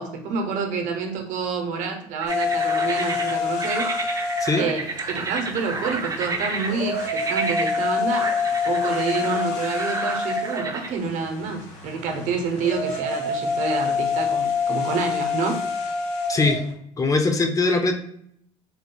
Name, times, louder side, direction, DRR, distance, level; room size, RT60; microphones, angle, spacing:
voice 1, 0.0-3.9 4.6-8.3 8.6-15.6, right 5 dB, 70° right, 4 dB, 0.8 m, -28 dB
sound 1, 2.2-10.9, right 3 dB, 25° right, 0.6 m, -31 dB
sound 2, 2.3-16.7, left 5 dB, 65° left, 1.1 m, -27 dB
voice 2, 16.3-16.6 17.0-18.0, left 3 dB, 25° left, 5 dB, 0.6 m, -21 dB
3.7 x 2.8 x 2.3 m, 0.68 s
cardioid pair, 100°, 13 cm